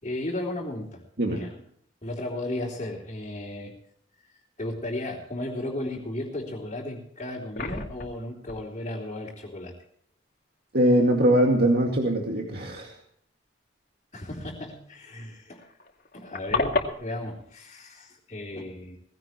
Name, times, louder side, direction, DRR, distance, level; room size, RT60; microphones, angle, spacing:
voice 1, 0.0-1.0 1.3-1.6 2.0-3.7 4.6-9.7 14.1-15.6 16.1-19.0, left 1 dB, 35° left, -5 dB, 3.5 m, -35 dB
sound 1, 6.9-7.0 7.2-8.2 8.5-8.6 11.0-11.2 12.1-12.2 12.4-12.5 14.9-15.0 15.2-15.3 15.6-16.9, left 3 dB, 50° left, 2.5 m, -29 dB
voice 2, 10.7-12.9, right 1 dB, 55° right, 0 dB, 2.2 m, -22 dB
19.0 x 16.5 x 3.1 m, 0.64 s
head